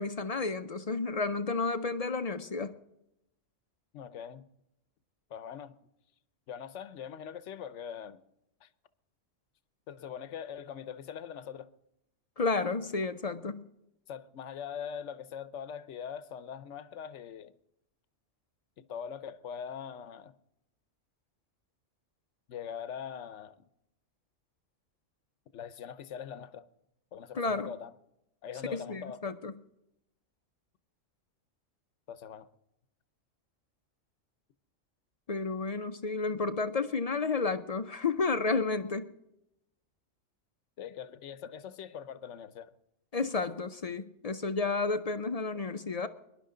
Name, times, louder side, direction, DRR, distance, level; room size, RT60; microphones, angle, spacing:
voice 1, 0.0-2.7 12.4-13.6 27.3-27.7 28.7-29.5 35.3-39.1 43.1-46.1, left 4 dB, 45° left, 0.5 m, -31 dB
voice 2, 3.9-4.5 5.3-5.8 6.5-8.2 8.6-8.7 9.9-11.7 14.1-17.6 18.8-20.4 22.5-23.6 25.5-26.7 27.1-27.9 28.4-29.4 32.1-32.5 40.8-42.8, left 8 dB, 65° left, 1.0 m, -42 dB
24.0 x 11.0 x 3.8 m
omnidirectional pair, 1.3 m